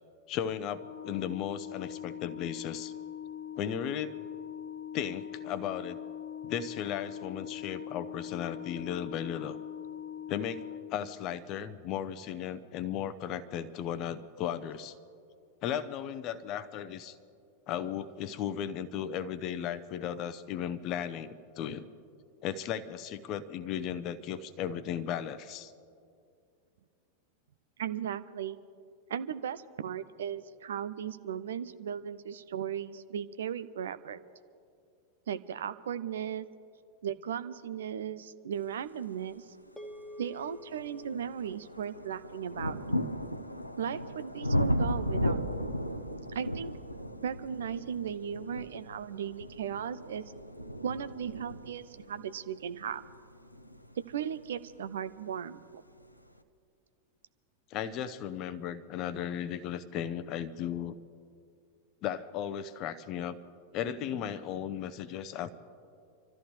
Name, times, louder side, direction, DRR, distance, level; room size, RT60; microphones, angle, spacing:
voice 1, 0.3-2.9 3.6-4.1 4.9-6.0 6.4-9.6 10.3-14.9 15.6-17.2 17.7-21.9 22.4-25.7 57.7-61.0 62.0-63.4 63.7-65.5, left 9 dB, 40° left, 13 dB, 0.7 m, -36 dB
Organ, 0.6-11.5, left 10 dB, 60° left, 1.2 m, -42 dB
voice 2, 27.8-28.6 29.1-34.2 35.3-36.5 37.0-39.5 40.2-42.8 43.8-45.4 46.3-46.7 47.2-50.2 50.8-53.0 54.0-55.8, right 8 dB, 60° right, 14 dB, 0.5 m, -36 dB
sound 1, 39.7-39.8 40.3-55.0 55.9-56.0, equal, 85° left, 0.6 m, -35 dB
sound 2, 39.8-44.3, left 2 dB, 5° left, 1.4 m, -51 dB
26.5 x 13.5 x 3.2 m, 2.4 s
figure-of-eight pair, 90°, 0 cm